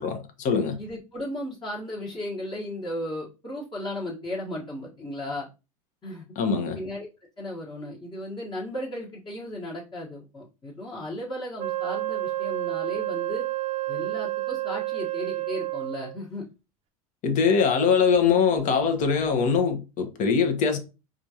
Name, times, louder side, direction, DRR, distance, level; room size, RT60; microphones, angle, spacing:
voice 1, 0.0-0.8 6.4-6.8 17.2-20.8, left 6 dB, 45° left, 1.0 m, -22 dB
voice 2, 0.8-5.5 6.0-6.2 6.7-7.1 7.4-13.5 13.9-16.5, left 1 dB, 25° left, 1.4 m, -35 dB
Wind instrument woodwind instrument, 11.6-16.2, right 17 dB, 35° right, 0.5 m, -30 dB
4.9 x 2.5 x 2.9 m
hypercardioid pair, 85°, 19 cm